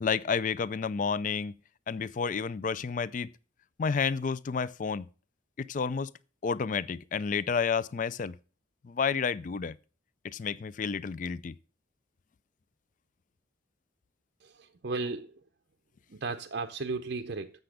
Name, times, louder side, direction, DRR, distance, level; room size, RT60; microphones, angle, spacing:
voice 1, 0.0-1.5 1.9-3.3 3.8-5.1 5.6-6.1 6.4-8.3 8.8-9.8 10.2-11.5, left 5 dB, 40° left, 0.3 m, -30 dB
voice 2, 14.4-15.4 16.1-17.5, right 3 dB, 55° right, 0.6 m, -35 dB
8.0 x 6.8 x 5.0 m
head